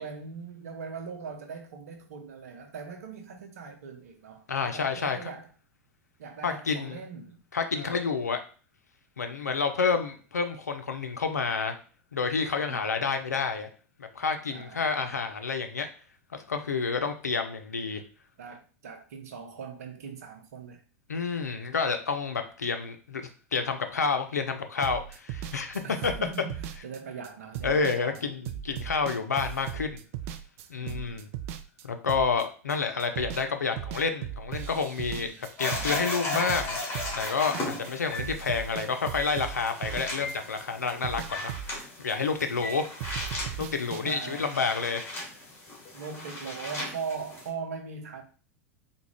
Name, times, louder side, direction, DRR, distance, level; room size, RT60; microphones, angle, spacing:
voice 1, 0.0-5.5 6.2-7.4 7.7-8.0 12.6-12.8 14.5-14.9 18.4-20.8 25.8-28.2 30.8-31.1 35.1-35.4 37.5-37.6 42.5-42.7 44.0-44.5 45.9-48.2, right 5 dB, 70° right, 0.8 m, -40 dB
voice 2, 4.5-5.3 6.4-7.0 7.5-8.4 9.2-11.8 12.1-13.7 14.0-15.9 16.3-18.0 21.1-26.1 27.6-30.0 30.7-31.3 31.8-36.8 37.1-41.5 42.0-42.9 43.6-45.1, left 5 dB, 85° left, 0.5 m, -29 dB
sound 1, 24.8-32.7 33.0-33.5 33.8-37.9 38.1-40.6 40.9-42.7 43.0-44.2, right 10 dB, 55° right, 0.3 m, -38 dB
sound 2, 35.6-47.5, left 2 dB, 25° left, 1.5 m, -37 dB
sound 3, 38.1-38.5 39.1-39.5 40.2-40.5 41.3-41.7 42.6-42.9, left 1 dB, 45° left, 1.1 m, -39 dB
3.5 x 2.2 x 3.3 m
figure-of-eight pair, 90°, 9 cm